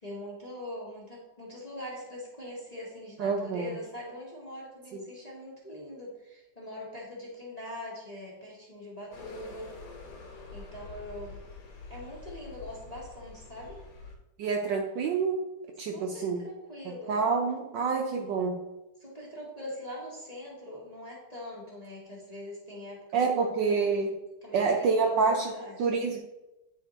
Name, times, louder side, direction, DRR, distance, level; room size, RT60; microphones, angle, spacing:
voice 1, 0.0-9.7 10.5-11.4 11.9-13.8 15.8-17.4 19.0-24.2 24.4-25.2 25.4-25.9, left 1 dB, 25° left, -5 dB, 1.0 m, -42 dB
voice 2, 3.2-3.7 4.9-5.0 14.4-15.4 15.8-16.4 16.9-18.6 23.1-24.2 24.5-25.5 25.8-26.2, right 5 dB, 70° right, 2 dB, 1.1 m, -27 dB
sound 1, 9.1-14.2, left 3 dB, 80° left, 1.9 m, -46 dB
9.0 x 3.5 x 3.8 m, 0.96 s
omnidirectional pair, 2.4 m